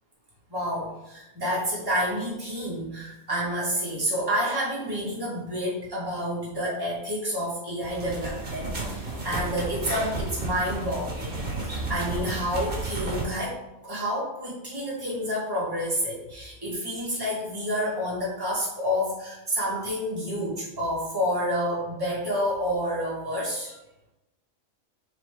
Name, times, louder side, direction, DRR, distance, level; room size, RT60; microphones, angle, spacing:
voice 1, 0.5-13.6 13.8-23.8, equal, 15° right, -7 dB, 2.2 m, -29 dB
sound 1, 7.8-13.2, right 2 dB, 40° right, 1.8 m, -32 dB
6.9 x 3.9 x 3.8 m, 0.92 s
omnidirectional pair, 1.4 m